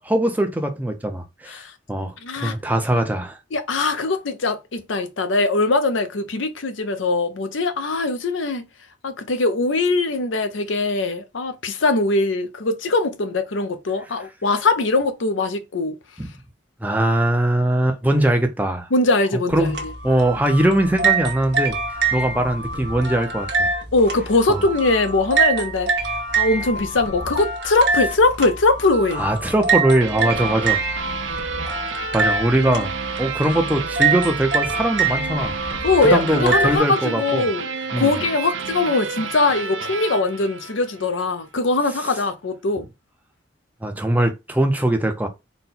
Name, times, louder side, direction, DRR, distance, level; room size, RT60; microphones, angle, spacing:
voice 1, 0.0-1.6 1.9-3.4 16.2-16.3 16.8-18.9 19.5-19.8 20.0-21.8 22.1-23.7 24.5-24.6 29.2-30.8 31.4-31.8 32.1-35.5 36.0-37.4 37.9-38.2 43.8-45.3, right 1 dB, 10° right, 0.6 m, -21 dB
voice 2, 2.2-2.6 3.5-8.6 9.0-16.0 18.9-19.9 23.9-26.1 26.4-29.2 35.8-37.7 38.0-42.9, left 3 dB, 85° left, 0.7 m, -21 dB
sound 1, 19.5-36.8, right 4 dB, 65° right, 1.1 m, -25 dB
sound 2, 30.0-41.3, right 5 dB, 90° right, 0.5 m, -30 dB
4.1 x 2.2 x 4.0 m
head